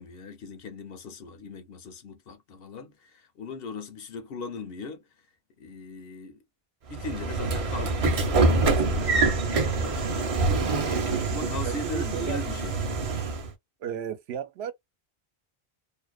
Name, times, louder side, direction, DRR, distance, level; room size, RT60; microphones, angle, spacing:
voice 1, 0.0-5.0 5.6-6.4 6.9-8.4 8.7-12.8, left 3 dB, 70° left, 0.8 m, -39 dB
Train / Sliding door, 6.9-13.5, right 3 dB, 45° right, 0.5 m, -25 dB
voice 2, 11.6-12.4 13.8-14.7, right 8 dB, 90° right, 0.8 m, -34 dB
2.6 x 2.1 x 2.3 m
omnidirectional pair, 1.0 m